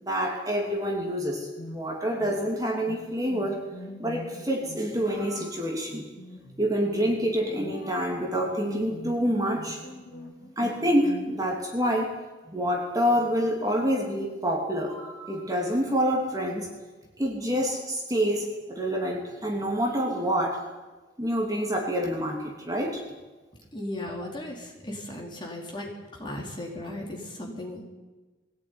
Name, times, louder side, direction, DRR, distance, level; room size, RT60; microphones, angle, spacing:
voice 1, 0.0-3.6 4.0-6.0 6.6-9.8 10.6-12.1 12.5-16.7 17.2-20.6 21.2-23.0, equal, 20° right, 0 dB, 3.1 m, -27 dB
sound 1, 1.6-11.3, left 1 dB, 60° left, 3.9 m, -44 dB
voice 2, 23.7-27.8, left 1 dB, 25° left, -1 dB, 4.5 m, -36 dB
21.0 x 17.0 x 9.8 m, 1.2 s
head